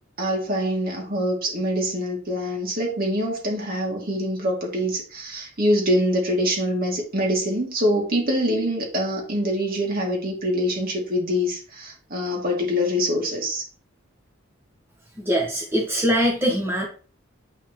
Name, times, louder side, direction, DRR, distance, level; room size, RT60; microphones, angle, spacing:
voice 1, 0.2-13.6, equal, 45° right, 0 dB, 2.4 m, -24 dB
voice 2, 15.2-16.8, equal, 10° right, -3 dB, 1.4 m, -22 dB
8.7 x 5.6 x 3.0 m, 0.38 s
head